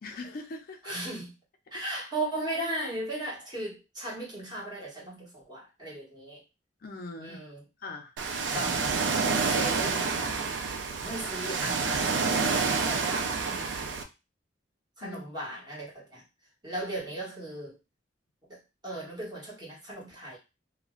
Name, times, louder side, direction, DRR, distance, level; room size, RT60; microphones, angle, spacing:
voice 1, 0.0-1.0 1.7-1.9 6.8-7.4 7.8-8.1 15.0-15.2, left 2 dB, 50° left, 4 dB, 0.4 m, -41 dB
voice 2, 0.8-1.3 1.7-6.4 7.2-7.6 8.5-10.4 11.0-14.0 15.0-16.2 16.6-17.8 18.5-18.6 18.8-20.4, right 1 dB, 25° right, -5 dB, 1.2 m, -37 dB
Ocean, 8.2-14.0, right 4 dB, 75° right, 0.4 m, -28 dB
2.4 x 2.0 x 3.7 m, 0.27 s
head